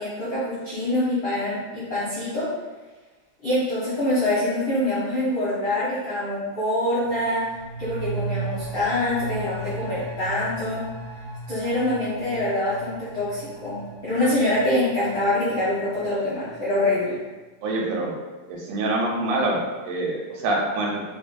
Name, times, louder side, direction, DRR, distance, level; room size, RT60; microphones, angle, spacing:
voice 1, 0.0-2.5 3.4-7.4 7.8-10.9 11.5-17.2, left 1 dB, 90° left, -11 dB, 1.0 m, -25 dB
sound 1, 7.0-16.5 16.8-16.9, right 3 dB, 60° right, 1.4 m, -36 dB
voice 2, 17.6-18.1 18.7-19.6 19.9-20.2 20.4-21.0, right 2 dB, 85° right, -2 dB, 2.3 m, -24 dB
5.5 x 2.5 x 2.2 m, 1.3 s
omnidirectional pair, 3.8 m